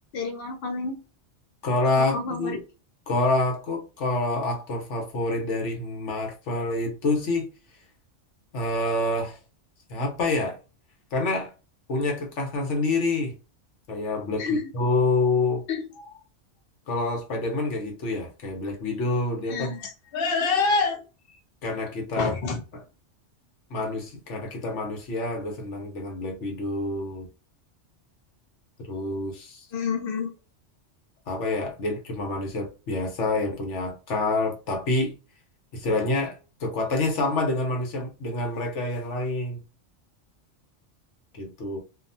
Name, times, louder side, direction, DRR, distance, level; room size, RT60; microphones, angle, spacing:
voice 1, 0.1-1.0 2.0-2.6 14.4-14.7 15.7-16.2 19.5-21.0 22.2-22.6 29.7-30.3, left 4 dB, 55° left, 0.9 m, -28 dB
voice 2, 1.6-2.6 3.1-7.5 8.5-9.4 9.9-10.6 11.1-11.5 11.9-13.3 13.9-15.6 16.9-19.7 21.6-22.3 23.7-27.3 28.8-29.7 31.3-35.2 35.7-39.6 41.3-41.8, left 2 dB, 75° left, 1.2 m, -27 dB
2.7 x 2.2 x 2.5 m
omnidirectional pair, 1.2 m